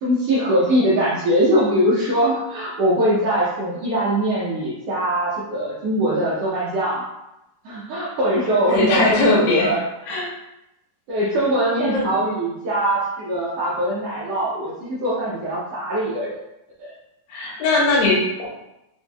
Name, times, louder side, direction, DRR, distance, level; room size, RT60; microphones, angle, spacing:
voice 1, 0.0-7.0 7.6-9.8 11.1-16.4 16.8-16.9, right 1 dB, 85° right, -7 dB, 1.3 m, -22 dB
voice 2, 8.4-9.7 10.0-10.3 11.3-11.5 11.8-12.2 17.3-18.5, left 2 dB, 85° left, -5 dB, 2.3 m, -20 dB
5.7 x 2.6 x 2.2 m, 0.90 s
omnidirectional pair, 3.7 m